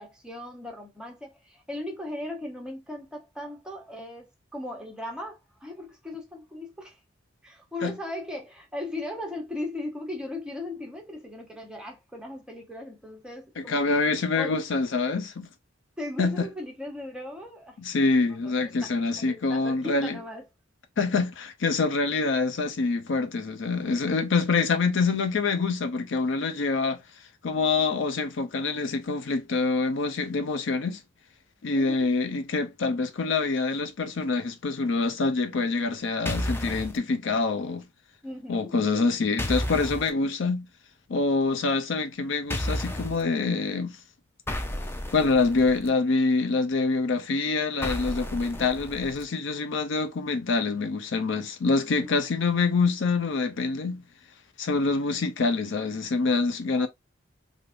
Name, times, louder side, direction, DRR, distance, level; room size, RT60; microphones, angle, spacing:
voice 1, 0.0-7.0 7.4-14.0 14.4-14.5 16.0-17.8 18.3-18.5 18.8-18.9 19.1-20.4 31.7-32.1 38.2-39.1 51.7-52.1 56.8-56.9, left 2 dB, 5° right, 1.0 m, -38 dB
voice 2, 13.6-15.5 16.2-16.5 17.8-20.2 21.0-27.0 27.4-31.0 31.6-37.8 38.5-40.7 41.1-44.0 45.1-54.0 54.6-56.9, left 3 dB, 70° left, 0.5 m, -26 dB
sound 1, 36.3-37.0 39.4-40.1 42.5-43.2 44.5-45.9 47.8-49.2, left 1 dB, 10° left, 0.5 m, -32 dB
3.3 x 2.5 x 2.5 m
head